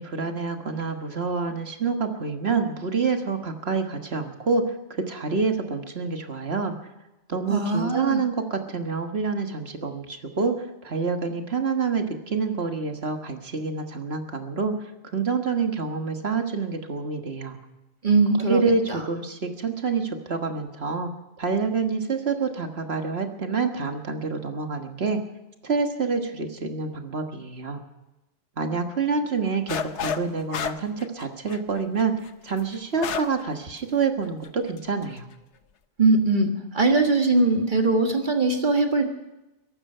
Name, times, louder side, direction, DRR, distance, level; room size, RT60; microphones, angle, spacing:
voice 1, 0.0-6.8 7.3-17.6 18.5-21.1 21.4-25.2 25.6-27.8 28.6-32.1 32.4-35.3, right 4 dB, 60° right, 5 dB, 1.7 m, -27 dB
voice 2, 7.5-8.2 18.0-19.0 36.0-39.0, right 3 dB, 40° right, 4 dB, 1.7 m, -21 dB
sound 1, 29.7-30.2 30.5-33.4 33.8-33.9 34.4-34.8, left 7 dB, 75° left, 1.1 m, -30 dB
22.5 x 11.5 x 5.6 m, 0.98 s
omnidirectional pair, 1.2 m